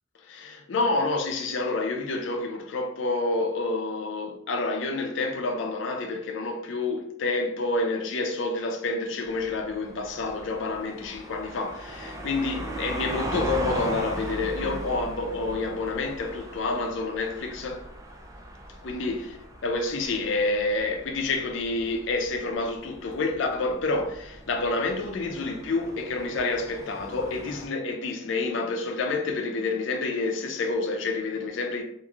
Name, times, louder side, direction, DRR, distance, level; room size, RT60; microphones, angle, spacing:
voice 1, 0.3-17.8 18.8-19.4 19.6-31.8, left 3 dB, 70° left, 0.4 m, -28 dB
sound 1, 9.2-27.7, right 1 dB, 20° right, 0.4 m, -39 dB
3.0 x 2.5 x 2.4 m
head